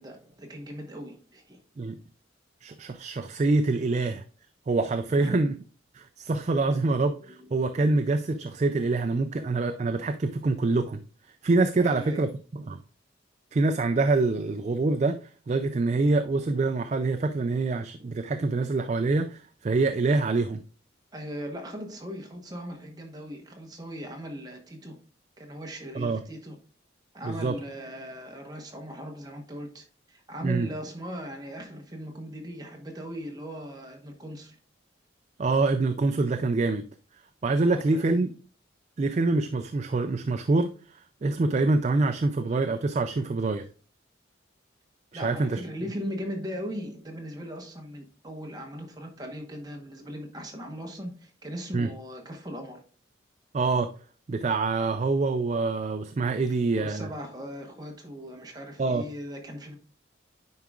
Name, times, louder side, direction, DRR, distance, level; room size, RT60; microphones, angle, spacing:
voice 1, 0.0-1.6 5.1-5.4 7.4-7.5 11.8-12.3 21.1-25.0 25.4-26.6 27.1-34.6 37.7-38.2 45.1-52.8 56.7-59.8, equal, 20° right, 1.1 m, -39 dB
voice 2, 2.6-4.2 4.7-5.5 5.9-11.0 11.4-12.8 13.5-15.2 15.5-20.6 25.9-26.2 27.2-27.5 30.4-30.7 35.4-36.9 37.4-38.3 39.0-43.6 45.1-45.6 51.7-51.9 53.5-53.9 54.3-57.1 58.8-59.1, right 3 dB, 35° right, 0.3 m, -25 dB
9.4 x 4.8 x 2.4 m
head